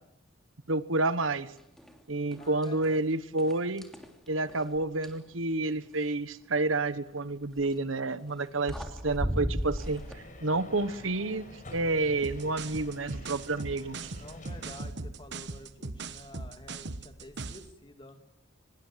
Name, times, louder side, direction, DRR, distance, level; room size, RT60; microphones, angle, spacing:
voice 1, 0.7-1.5 2.1-3.9 4.3-8.7 9.0-11.4 11.7-14.1, right 2 dB, 80° right, 13 dB, 1.3 m, -29 dB
sound 1, 1.8-2.0 2.3-3.0 3.4-5.2 7.4-7.7 8.4-8.5 8.7-10.2, equal, ahead, 3.1 m, -35 dB
voice 2, 2.4-3.1 14.2-18.2, left 1 dB, 25° left, 6 dB, 2.7 m, -49 dB
sound 2, 9.8-14.8, left 1 dB, 40° left, 5.6 m, -48 dB
sound 3, 12.2-17.7, right 3 dB, 60° right, 1.3 m, -39 dB
24.5 x 21.5 x 7.6 m, 0.78 s
head